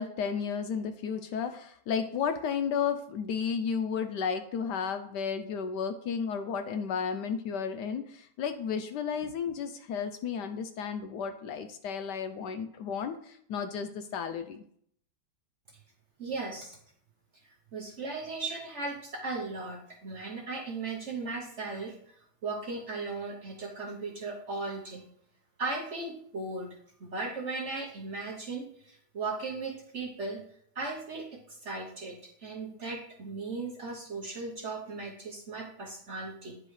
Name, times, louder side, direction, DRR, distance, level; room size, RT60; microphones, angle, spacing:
voice 1, 0.0-14.6, left 6 dB, 70° left, 8 dB, 1.1 m, -33 dB
voice 2, 16.2-16.8 17.7-22.1 22.4-25.1 25.6-30.4 30.8-36.6, right 3 dB, 50° right, 1 dB, 0.9 m, -37 dB
9.6 x 4.9 x 3.2 m, 0.66 s
omnidirectional pair, 2.1 m